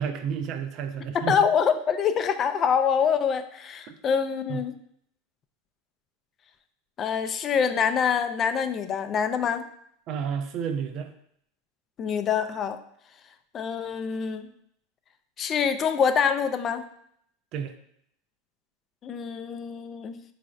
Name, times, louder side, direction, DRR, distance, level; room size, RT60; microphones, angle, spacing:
voice 1, 0.0-1.4 3.9-4.0 4.5-4.6 10.1-11.1 17.5-17.8, right 7 dB, 50° right, 8 dB, 0.4 m, -31 dB
voice 2, 1.1-4.7 7.0-9.6 12.0-12.8 13.5-14.5 15.4-16.8 19.0-20.2, left 7 dB, 35° left, 9 dB, 0.3 m, -25 dB
3.9 x 3.2 x 2.4 m, 0.68 s
hypercardioid pair, 105°, 0 cm